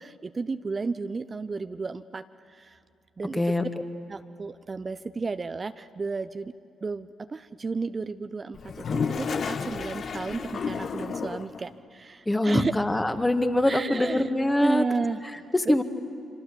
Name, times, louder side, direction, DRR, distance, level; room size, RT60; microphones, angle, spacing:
voice 1, 0.0-2.8 3.2-3.4 4.1-6.5 6.8-12.7 13.7-14.3 14.6-15.8, right 4 dB, 40° right, 11 dB, 0.7 m, -32 dB
voice 2, 3.3-3.6 12.3-14.8 15.5-15.8, left 1 dB, 15° left, 7 dB, 1.9 m, -23 dB
Toilet flush, 8.5-11.6, left 5 dB, 55° left, 1.0 m, -31 dB
27.0 x 25.0 x 7.2 m, 2.6 s
hypercardioid pair, 40°, 0 cm